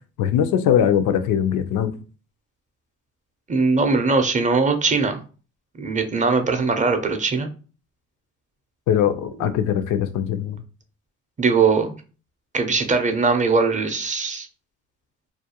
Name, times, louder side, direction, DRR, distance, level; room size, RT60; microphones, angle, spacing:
voice 1, 0.2-1.9 8.9-10.6, left 9 dB, 85° left, 0.5 m, -21 dB
voice 2, 3.5-5.2 5.8-7.5 9.4-9.5 11.4-11.9 12.5-14.5, right 4 dB, 25° right, 0.5 m, -20 dB
2.4 x 2.2 x 2.8 m
cardioid pair, 90°, 30 cm